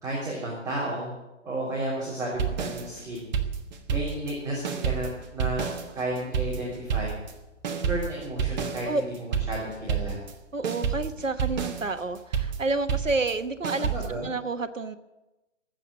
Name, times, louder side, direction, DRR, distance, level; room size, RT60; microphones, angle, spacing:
voice 1, 0.0-1.1 1.4-3.3 3.9-5.7 5.9-7.1 7.7-10.2 13.8-14.3, right 1 dB, 10° right, -8 dB, 3.4 m, -32 dB
sound 1, 2.4-4.4 4.6-10.4 10.6-14.1, right 7 dB, 35° right, 1.4 m, -30 dB
voice 2, 10.5-13.9 14.2-15.0, right 3 dB, 80° right, 10 dB, 1.2 m, -29 dB
19.0 x 7.8 x 7.6 m, 1.0 s
figure-of-eight pair, 130°, 38 cm